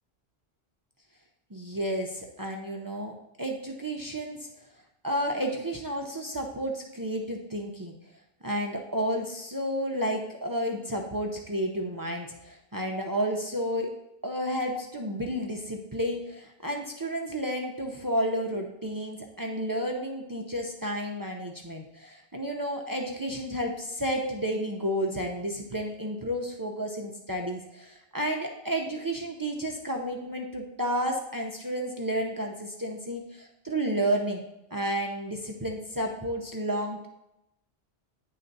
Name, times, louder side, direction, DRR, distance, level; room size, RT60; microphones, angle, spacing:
voice 1, 1.5-4.5 5.0-8.0 8.4-13.9 14.2-34.4 34.7-37.1, equal, 25° right, 1 dB, 0.5 m, -31 dB
9.5 x 3.3 x 4.0 m, 0.88 s
omnidirectional pair, 1.0 m